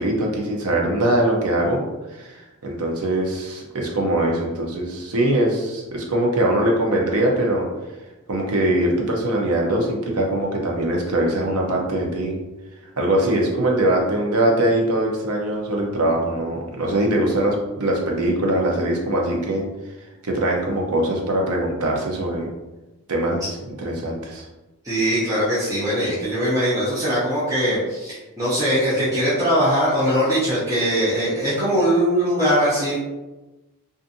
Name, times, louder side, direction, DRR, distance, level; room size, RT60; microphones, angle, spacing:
voice 1, 0.0-1.8 2.1-7.7 8.3-12.4 13.0-19.7 20.2-22.5 23.1-23.6 23.8-24.5, right 1 dB, 75° right, -1 dB, 0.6 m, -22 dB
voice 2, 24.8-33.0, equal, 15° right, -10 dB, 0.6 m, -21 dB
2.5 x 2.4 x 2.6 m, 1.1 s
head